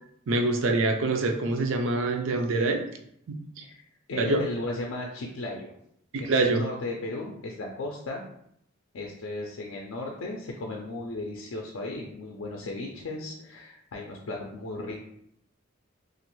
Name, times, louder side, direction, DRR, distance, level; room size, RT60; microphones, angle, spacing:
voice 1, 0.3-2.8 3.3-3.4 4.2-4.4 6.1-6.6, right 2 dB, 70° right, 5 dB, 0.4 m, -25 dB
voice 2, 4.1-5.7 6.2-8.2 8.9-15.0, left 2 dB, 75° left, -1 dB, 0.4 m, -35 dB
3.0 x 2.4 x 3.0 m, 0.71 s
head